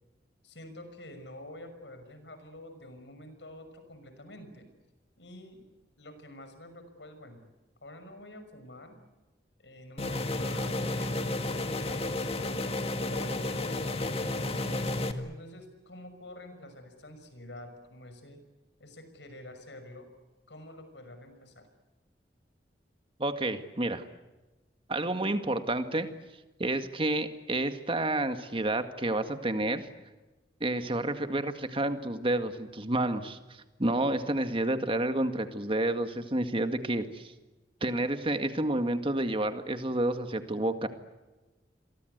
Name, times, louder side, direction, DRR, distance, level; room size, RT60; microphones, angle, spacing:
voice 1, 0.4-4.7 5.2-5.6 6.0-7.4 7.8-9.0 9.6-14.7 15.2-18.4 18.8-20.1 20.5-21.7, left 1 dB, 80° left, 9 dB, 6.1 m, -48 dB
sound 1, 10.0-15.1, left 2 dB, 35° left, 2.0 m, -32 dB
voice 2, 23.2-24.0 24.9-26.1 26.6-29.9 30.6-33.4 33.8-37.3 37.8-40.9, right 1 dB, 30° right, 8 dB, 2.0 m, -29 dB
29.5 x 23.0 x 8.1 m, 1.1 s
head